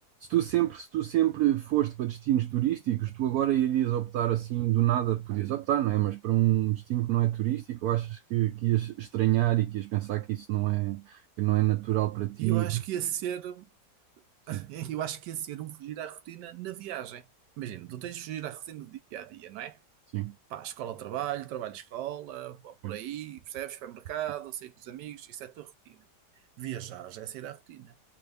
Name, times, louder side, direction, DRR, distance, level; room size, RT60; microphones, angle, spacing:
voice 1, 0.3-12.8 14.5-14.6 20.1-20.3 22.8-23.0, right 15 dB, 70° right, 1.0 m, -27 dB
voice 2, 12.4-13.7 14.5-17.3 17.6-19.8 20.5-26.1 26.6-27.9, right 11 dB, 90° right, 1.3 m, -37 dB
3.4 x 2.7 x 3.2 m
omnidirectional pair, 1.8 m